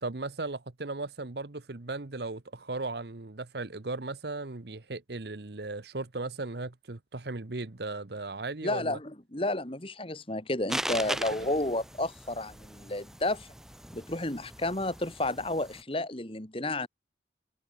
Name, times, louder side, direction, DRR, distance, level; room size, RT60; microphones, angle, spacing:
voice 1, 0.0-9.0 11.1-11.5, right 3 dB, 65° right, 1.1 m, -37 dB
voice 2, 8.6-13.5 13.9-16.9, left 2 dB, 30° left, 2.3 m, -31 dB
sound 1, 10.7-15.8, right 1 dB, 5° right, 4.5 m, -39 dB
head